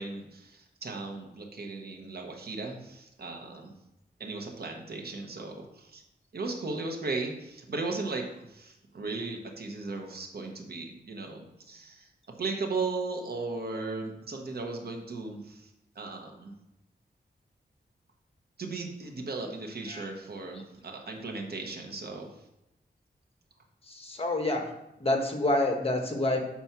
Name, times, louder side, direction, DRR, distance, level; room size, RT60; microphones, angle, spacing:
voice 1, 0.0-3.7 4.2-6.0 6.3-12.1 12.4-15.7 15.9-16.5 18.6-22.3, right 3 dB, 60° right, 2 dB, 1.1 m, -36 dB
voice 2, 23.9-24.6 25.0-26.4, left 2 dB, 30° left, 3 dB, 1.3 m, -27 dB
5.7 x 4.3 x 5.9 m, 0.88 s
wide cardioid pair, 85°, 18 cm